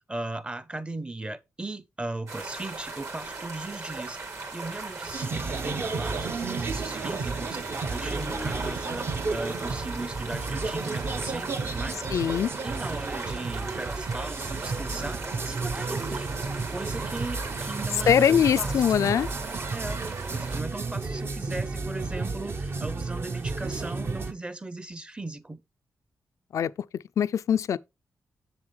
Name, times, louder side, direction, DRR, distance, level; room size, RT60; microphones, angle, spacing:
voice 1, 0.0-12.1 12.6-16.3 16.7-18.7 19.7-20.0 20.3-25.6, right 2 dB, 20° right, 0.7 m, -38 dB
sound 1, 2.3-20.6, right 3 dB, 60° right, 2.6 m, -38 dB
sound 2, 5.1-24.3, right 4 dB, 45° right, 0.8 m, -32 dB
sound 3, 5.6-16.7, right 2 dB, 75° right, 2.9 m, -46 dB
voice 2, 12.1-12.5 18.1-19.3 26.5-26.7 27.2-27.8, left 8 dB, 70° left, 0.3 m, -22 dB
7.1 x 7.1 x 3.2 m
cardioid pair, 85°, 6 cm